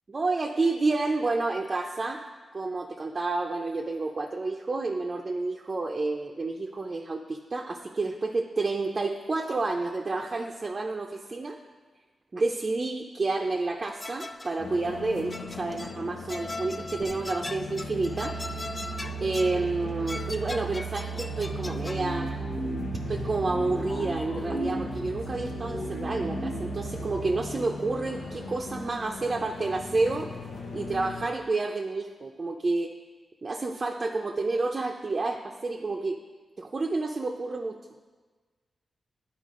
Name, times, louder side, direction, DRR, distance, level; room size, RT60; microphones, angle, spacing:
voice 1, 0.1-2.2 2.5-11.6 12.3-18.3 19.2-22.3 23.1-30.3 30.7-32.9 33.4-36.2 36.6-37.8, right 3 dB, 45° right, 1 dB, 0.6 m, -29 dB
sound 1, 14.0-14.7 15.3-16.0 16.3-19.6 20.1-22.0, left 2 dB, 30° left, 0.4 m, -39 dB
sound 2, 14.6-31.3, right 1 dB, 85° left, 0.9 m, -37 dB
sound 3, 21.3-28.4, left 1 dB, 60° left, 0.9 m, -36 dB
10.5 x 4.5 x 3.7 m, 1.4 s
supercardioid pair, 45°, 0 cm